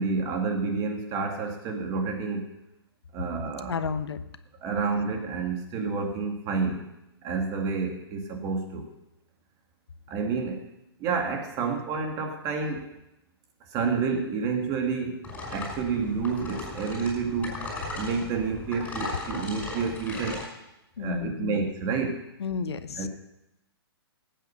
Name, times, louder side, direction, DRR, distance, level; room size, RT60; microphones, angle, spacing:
voice 1, 0.0-2.5 3.1-3.7 4.6-6.9 7.2-8.9 10.1-10.6 11.0-12.9 13.7-15.2 15.5-17.6 17.9-20.4 21.0-22.2 23.0-23.1, right 4 dB, 25° right, 4 dB, 2.1 m, -29 dB
voice 2, 3.7-4.2 11.6-11.8 21.0-21.6 22.4-23.1, left 6 dB, 85° left, 11 dB, 1.0 m, -32 dB
sound 1, 15.2-20.5, left 2 dB, 10° left, 5.8 m, -37 dB
15.5 x 9.1 x 5.8 m, 0.89 s
hypercardioid pair, 150°, 13 cm